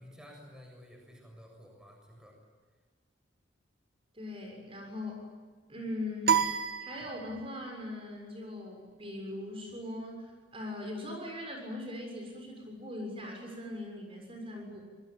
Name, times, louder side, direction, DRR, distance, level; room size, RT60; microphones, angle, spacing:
voice 1, 0.0-2.4, equal, 5° right, 1 dB, 7.2 m, -52 dB
voice 2, 4.1-5.3 5.7-14.8, left 1 dB, 30° right, 1 dB, 6.9 m, -40 dB
sound 1, 6.3-7.7, right 8 dB, 50° right, 1.7 m, -30 dB
27.5 x 22.5 x 9.0 m, 1.5 s
head